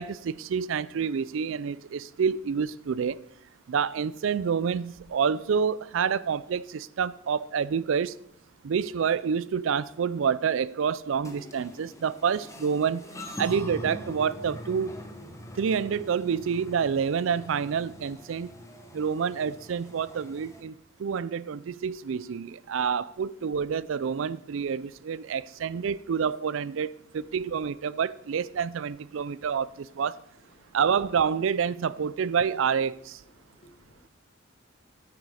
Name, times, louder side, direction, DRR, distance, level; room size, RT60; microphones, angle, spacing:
voice 1, 0.0-3.2 3.7-8.2 8.6-14.9 15.6-18.5 18.9-30.2 30.7-33.2, right 6 dB, 70° right, 0.4 m, -28 dB
sound 1, 11.2-20.6, equal, 15° left, 0.9 m, -43 dB
voice 2, 33.4-34.1, left 1 dB, 30° left, 0.6 m, -59 dB
9.1 x 8.6 x 4.8 m
head